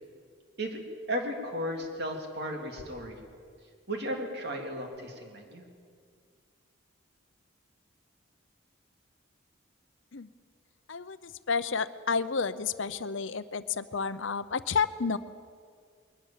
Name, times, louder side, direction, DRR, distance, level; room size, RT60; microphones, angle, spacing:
voice 1, 1.1-3.2 3.9-5.6, equal, 50° right, 2 dB, 3.2 m, -35 dB
voice 2, 10.9-15.2, left 5 dB, 70° left, 13 dB, 0.7 m, -31 dB
22.0 x 19.5 x 7.5 m, 2.1 s
head